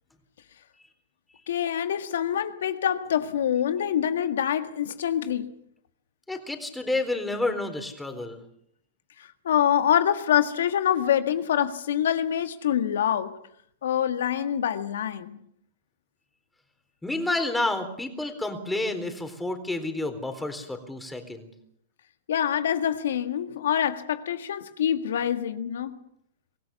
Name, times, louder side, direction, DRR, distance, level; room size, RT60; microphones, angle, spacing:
voice 1, 1.5-5.5 9.4-13.4 13.8-15.4 22.3-26.0, left 9 dB, 75° left, 1.7 m, -25 dB
voice 2, 6.3-8.4 17.0-21.5, left 2 dB, 5° left, 3.9 m, -30 dB
25.0 x 17.0 x 7.1 m
hypercardioid pair, 120°, 0 cm